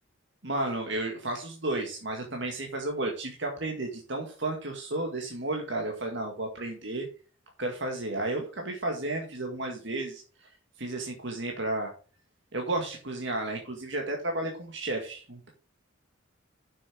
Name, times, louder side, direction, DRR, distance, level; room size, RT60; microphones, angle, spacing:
voice 1, 0.4-7.1 7.6-10.5 10.8-11.9 12.5-15.5, right 2 dB, 60° right, 2 dB, 1.9 m, -32 dB
7.2 x 6.8 x 6.2 m, 0.37 s
head